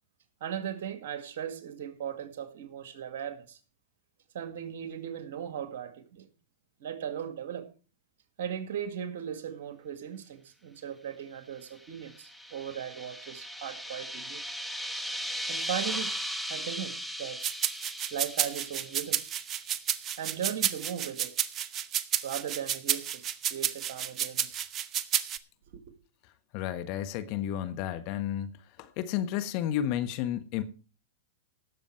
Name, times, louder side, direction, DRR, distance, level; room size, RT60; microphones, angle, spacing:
voice 1, 0.4-3.6 4.3-6.3 6.8-7.7 8.4-14.4 15.5-16.1 16.5-17.4 18.1-19.2 20.2-21.3 22.2-23.2 23.5-24.5 25.7-25.8, right 9 dB, 65° right, 1.9 m, -37 dB
sound 1, 11.8-20.1, equal, ahead, 1.2 m, -38 dB
sound 2, 17.4-25.4, right 9 dB, 30° right, 0.8 m, -30 dB
voice 2, 26.5-28.5 28.8-30.6, left 11 dB, 50° left, 1.3 m, -32 dB
17.5 x 7.1 x 4.5 m
hypercardioid pair, 110°, 0 cm